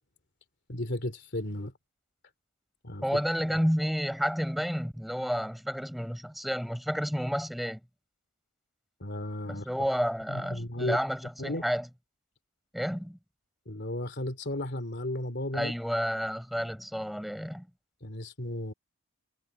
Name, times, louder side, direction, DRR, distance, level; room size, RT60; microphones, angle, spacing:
voice 1, 0.7-1.7 2.8-3.0 9.0-9.7 10.3-11.0 11.4-11.6 13.7-15.7 18.0-18.7, left 1 dB, 50° left, 2.9 m, -34 dB
voice 2, 3.0-7.8 9.5-11.9 12.7-13.2 15.5-17.7, equal, ahead, 7.2 m, -30 dB
head